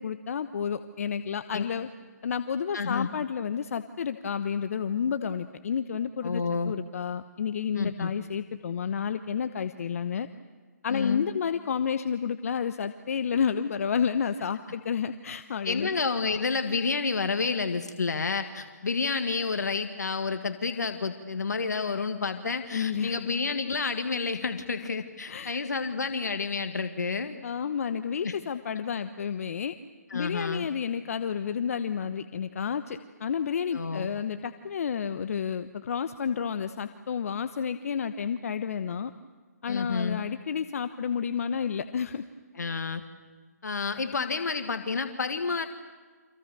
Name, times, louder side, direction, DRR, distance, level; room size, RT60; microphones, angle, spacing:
voice 1, 0.0-1.9 2.2-10.3 10.8-15.9 22.7-23.2 25.3-25.6 27.4-29.7 30.1-39.1 39.6-42.2, left 7 dB, 55° left, 11 dB, 1.0 m, -30 dB
voice 2, 2.7-3.1 6.2-6.7 7.8-8.1 10.9-11.2 15.6-27.4 28.2-28.3 30.1-30.7 33.7-34.1 39.7-40.2 42.6-43.0 43.6-45.7, left 4 dB, 75° left, 8 dB, 1.7 m, -30 dB
29.5 x 26.5 x 6.9 m, 1.4 s
figure-of-eight pair, 140°, 9 cm